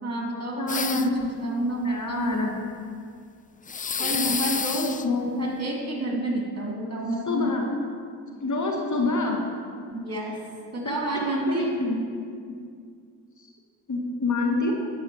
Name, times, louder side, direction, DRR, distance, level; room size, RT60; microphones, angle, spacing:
voice 1, 0.0-2.4 3.9-4.9 5.4-7.5 9.9-10.4 10.7-11.7, right 1 dB, 35° right, -1 dB, 3.0 m, -29 dB
voice 2, 0.6-1.0 1.8-2.5 4.8-5.3 7.3-7.6 8.4-9.4 11.1-11.5 11.8-12.0 13.9-14.7, left 3 dB, 45° left, 1 dB, 1.8 m, -27 dB
sound 1, 0.7-1.3 3.7-5.0, left 6 dB, 20° left, 0.4 m, -28 dB
9.9 x 5.5 x 7.1 m, 2.2 s
supercardioid pair, 45°, 41 cm